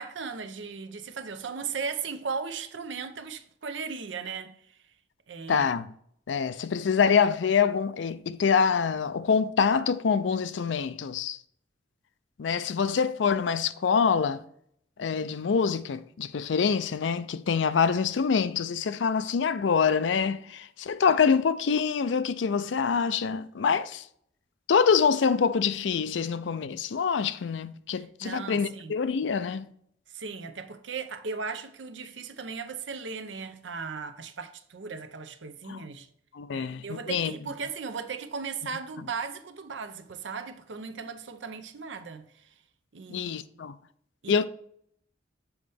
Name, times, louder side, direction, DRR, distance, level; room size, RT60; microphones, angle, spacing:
voice 1, 0.0-4.7 5.3-5.7 27.9-29.0 30.1-36.1 36.5-42.5 42.9-43.4 44.2-44.5, right 5 dB, 85° right, 0.7 m, -37 dB
voice 2, 5.5-5.9 6.3-11.4 12.4-14.4 15.0-24.0 24.7-29.6 35.7-35.8 36.3-37.3 43.1-43.7 44.3-44.5, left 6 dB, 80° left, 0.4 m, -25 dB
7.1 x 4.2 x 3.4 m
head